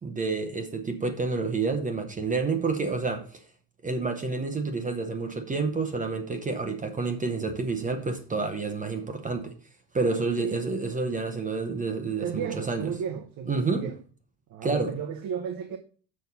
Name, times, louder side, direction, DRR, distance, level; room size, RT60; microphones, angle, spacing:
voice 1, 0.0-3.2 3.8-9.5 9.9-12.9 13.5-13.8 14.6-14.9, right 4 dB, 20° right, 0.7 m, -29 dB
voice 2, 10.0-10.6 12.2-14.0 14.5-15.8, right 7 dB, 50° right, 0.8 m, -34 dB
6.5 x 5.3 x 5.6 m
cardioid pair, 165°, 44 cm